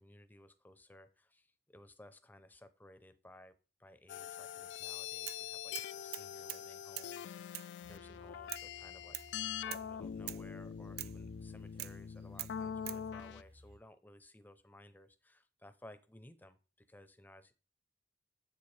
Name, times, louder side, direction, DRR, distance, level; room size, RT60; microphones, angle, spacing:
voice 1, 0.0-9.2 9.6-17.5, left 1 dB, 10° left, 11 dB, 0.6 m, -58 dB
sound 1, 4.1-13.4, left 8 dB, 85° left, 0.3 m, -44 dB
sound 2, 5.3-5.5 5.7-6.7 7.0-7.1 7.5-7.7 8.5-8.7 9.1-9.3 9.7-9.9 10.3-10.5 11.0-11.2 11.8-12.0 12.4-13.0, right 15 dB, 60° right, 0.3 m, -44 dB
sound 3, 7.8-13.8, left 1 dB, 75° right, 1.9 m, -58 dB
7.8 x 7.0 x 3.3 m, 0.34 s
head